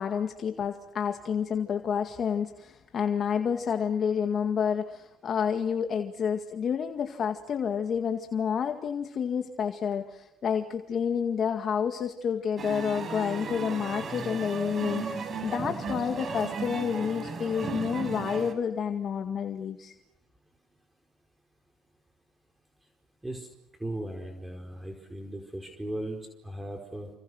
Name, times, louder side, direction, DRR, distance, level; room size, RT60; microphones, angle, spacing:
voice 1, 0.0-19.9, left 7 dB, 45° left, 5 dB, 2.0 m, -29 dB
sound 1, 12.6-18.5, right 4 dB, 40° right, 5.9 m, -35 dB
voice 2, 23.8-27.1, right 1 dB, 10° right, 3 dB, 4.7 m, -37 dB
29.5 x 26.5 x 6.4 m, 0.88 s
supercardioid pair, 100°, 0 cm